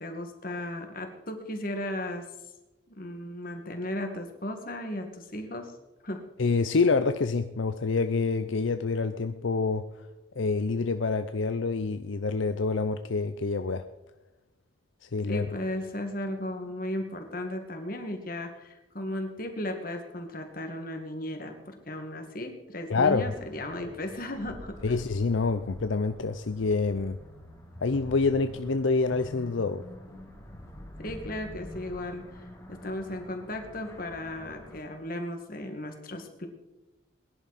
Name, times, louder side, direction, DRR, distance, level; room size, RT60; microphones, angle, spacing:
voice 1, 0.0-2.3 3.0-5.7 6.0-6.2 15.3-25.0 31.0-32.4 32.7-36.5, left 1 dB, 45° left, 5 dB, 2.0 m, -35 dB
voice 2, 6.4-9.9 10.4-13.8 15.1-15.5 22.9-23.3 24.8-27.2 27.8-29.8, left 4 dB, 75° left, 9 dB, 0.6 m, -27 dB
sound 1, 23.0-34.8, equal, 15° left, 2.6 m, -46 dB
21.5 x 11.0 x 4.2 m, 1.0 s
head